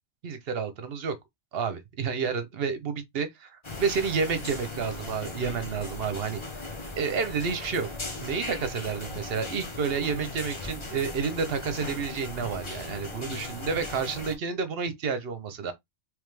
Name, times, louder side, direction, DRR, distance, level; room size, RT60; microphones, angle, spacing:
voice 1, 0.2-1.1 1.5-6.4 7.0-7.9 8.2-15.7, right 5 dB, 60° right, 1.0 m, -30 dB
sound 1, 3.6-14.3, left 2 dB, 25° left, 0.9 m, -38 dB
3.5 x 3.3 x 3.2 m
omnidirectional pair, 1.2 m